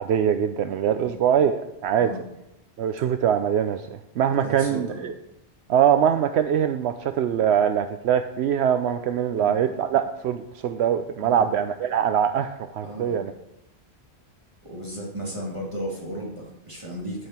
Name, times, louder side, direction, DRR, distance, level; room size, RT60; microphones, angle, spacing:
voice 1, 0.0-2.1 2.8-5.1 5.7-13.3, right 9 dB, 75° right, 8 dB, 0.9 m, -23 dB
voice 2, 4.4-5.0 9.3-9.6 11.2-11.5 12.8-13.2 14.6-17.3, right 1 dB, 30° right, -5 dB, 2.7 m, -35 dB
10.5 x 9.7 x 4.3 m, 0.85 s
omnidirectional pair, 1.1 m